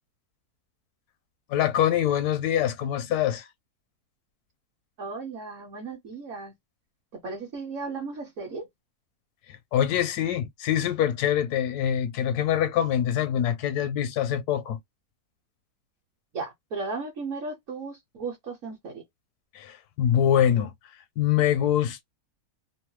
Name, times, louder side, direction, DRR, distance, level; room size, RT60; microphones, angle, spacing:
voice 1, 1.5-3.5 9.5-14.8 19.5-20.7 21.2-22.0, left 10 dB, 85° left, 1.1 m, -24 dB
voice 2, 5.0-6.5 7.1-8.7 16.3-19.0, right 4 dB, 60° right, 1.1 m, -35 dB
2.8 x 2.0 x 3.1 m
omnidirectional pair, 1.6 m